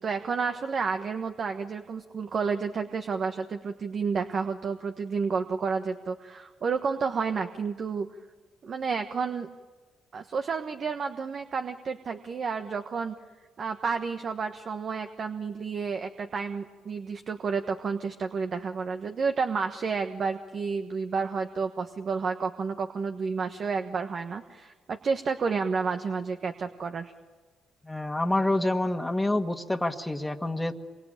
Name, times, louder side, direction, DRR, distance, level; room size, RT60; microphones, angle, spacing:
voice 1, 0.0-8.1 8.6-9.5 10.1-13.2 13.6-27.1, right 5 dB, 50° right, 7 dB, 1.3 m, -30 dB
voice 2, 27.8-30.7, left 1 dB, 10° left, 3 dB, 1.7 m, -27 dB
27.0 x 24.0 x 9.0 m, 1.4 s
supercardioid pair, 70°, 0 cm